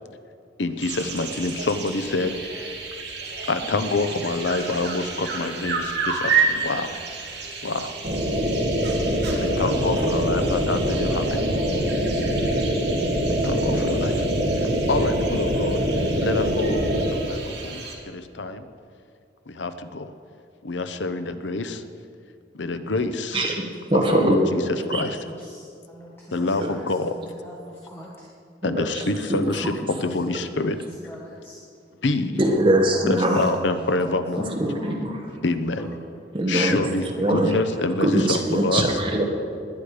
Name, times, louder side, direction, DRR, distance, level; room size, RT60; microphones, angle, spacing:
voice 1, 0.6-2.8 3.5-6.9 7.6-8.0 9.4-11.5 13.4-14.3 14.6-15.8 16.2-18.7 19.5-20.1 20.6-21.8 22.5-23.5 23.9-24.6 24.9-25.2 26.3-27.1 28.6-30.8 32.0-32.4 33.1-34.5 35.4-35.9 36.5-39.0, left 2 dB, 80° left, 10 dB, 0.9 m, -27 dB
sound 1, 0.8-18.0, right 5 dB, 70° right, 2.8 m, -31 dB
sound 2, 8.0-17.1, equal, 50° right, 2.8 m, -23 dB
voice 2, 23.3-25.0 28.6-29.0 29.3-29.5 32.3-33.4 34.6-35.3 36.3-36.8 37.2-37.5 38.0-39.2, right 1 dB, 30° right, 1 dB, 1.7 m, -22 dB
voice 3, 25.2-28.3 30.0-30.1 30.8-31.6 32.3-33.1 33.8-35.0 35.8-36.1 39.1-39.2, equal, 15° left, -4 dB, 1.6 m, -41 dB
20.0 x 9.8 x 5.1 m, 2.4 s
head